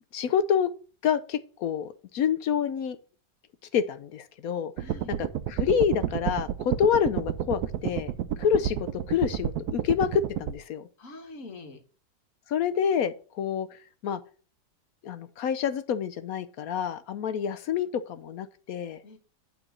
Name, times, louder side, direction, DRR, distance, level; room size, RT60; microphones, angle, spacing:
voice 1, 0.1-0.7 1.0-3.0 3.7-4.7 5.2-10.9 12.5-14.2 15.0-19.0, left 8 dB, 70° left, 12 dB, 0.9 m, -28 dB
voice 2, 4.8-5.2 8.4-8.6 11.0-11.8 19.0-19.2, left 2 dB, 50° left, 6 dB, 1.8 m, -45 dB
sound 1, 4.8-10.5, right 11 dB, 70° right, 1.1 m, -30 dB
9.0 x 3.9 x 7.2 m, 0.38 s
omnidirectional pair, 1.9 m